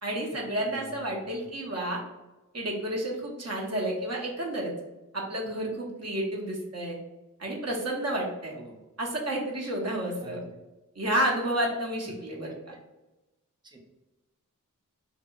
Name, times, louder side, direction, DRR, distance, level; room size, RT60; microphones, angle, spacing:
voice 1, 0.0-2.0 2.5-4.7 5.1-7.0 7.4-8.5 9.0-10.4 11.0-12.7, right 1 dB, 50° right, -1 dB, 0.7 m, -30 dB
voice 2, 0.6-1.1 8.5-8.8 10.2-10.5 13.6-13.9, right 2 dB, 15° right, 1 dB, 0.4 m, -47 dB
2.7 x 2.3 x 2.2 m, 1.0 s
wide cardioid pair, 55°, 32 cm